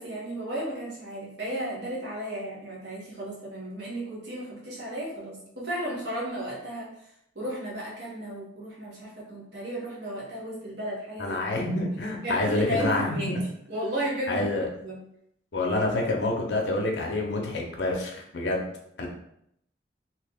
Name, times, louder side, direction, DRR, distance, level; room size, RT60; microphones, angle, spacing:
voice 1, 0.0-6.9 7.3-11.4 12.2-13.3 13.7-14.4 14.8-15.0, equal, 65° right, -6 dB, 1.1 m, -34 dB
voice 2, 11.2-13.4 14.3-14.7 15.5-18.7 19.0-19.1, left 2 dB, 65° left, 0 dB, 0.6 m, -27 dB
2.9 x 2.9 x 3.5 m, 0.75 s
head